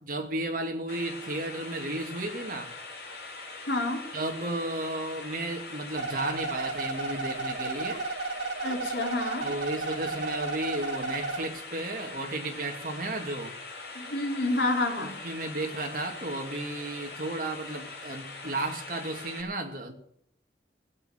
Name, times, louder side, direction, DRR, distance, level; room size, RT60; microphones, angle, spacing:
voice 1, 0.0-2.7 4.1-8.0 9.4-13.6 15.0-19.9, right 2 dB, 50° right, 2.5 m, -33 dB
sound 1, 0.9-19.4, left 3 dB, 60° left, 4.0 m, -42 dB
voice 2, 3.7-4.0 8.6-9.5 13.9-15.2, left 2 dB, 80° left, 3.9 m, -29 dB
sound 2, 5.9-11.5, right 3 dB, 75° right, 2.7 m, -33 dB
16.5 x 8.9 x 9.3 m
head